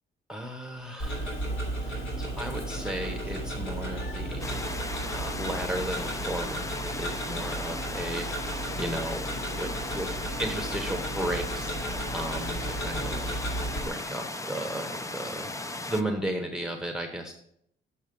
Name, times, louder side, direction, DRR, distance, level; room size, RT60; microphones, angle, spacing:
voice 1, 0.3-1.5 1.8-4.7 5.1-9.2 9.5-13.4 13.8-17.3, right 1 dB, 5° right, 3 dB, 1.0 m, -35 dB
Tick-tock, 1.0-13.9, right 1 dB, 75° left, 3.3 m, -34 dB
sound 1, 4.4-16.0, left 2 dB, 15° left, 0.5 m, -36 dB
7.2 x 6.1 x 5.2 m, 0.70 s
cardioid pair, 90°, 20 cm